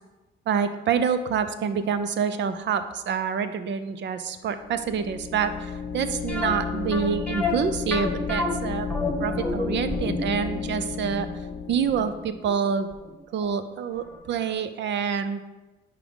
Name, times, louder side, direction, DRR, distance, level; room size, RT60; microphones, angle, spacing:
voice 1, 0.5-8.9 9.2-11.3 11.7-12.9 13.3-15.4, right 7 dB, 65° right, 10 dB, 0.6 m, -27 dB
sound 1, 4.6-12.3, left 6 dB, 50° left, 0.5 m, -33 dB
sound 2, 6.3-13.1 13.4-13.5 14.1-14.2 14.5-14.6, left 2 dB, 5° left, 1.2 m, -31 dB
5.8 x 4.8 x 5.4 m, 1.1 s
cardioid pair, 90°, 20 cm